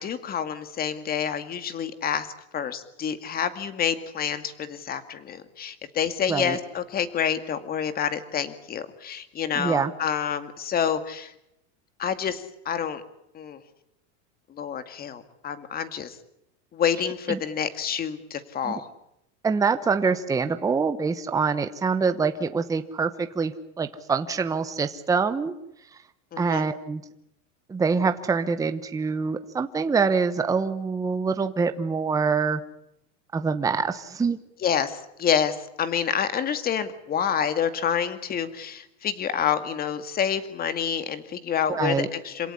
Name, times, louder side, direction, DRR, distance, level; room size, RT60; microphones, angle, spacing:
voice 1, 0.0-2.3 2.5-11.3 12.0-13.0 13.3-13.6 14.5-16.2 16.7-18.9 26.3-26.6 34.6-42.5, left 8 dB, 25° left, 11 dB, 2.2 m, -28 dB
voice 2, 9.5-9.9 17.3-17.4 18.6-18.8 19.4-25.5 26.4-27.0 27.7-32.6 33.3-34.4 41.7-42.1, right 5 dB, 10° right, 9 dB, 1.0 m, -25 dB
27.5 x 17.5 x 9.9 m, 0.83 s
supercardioid pair, 150°, 36 cm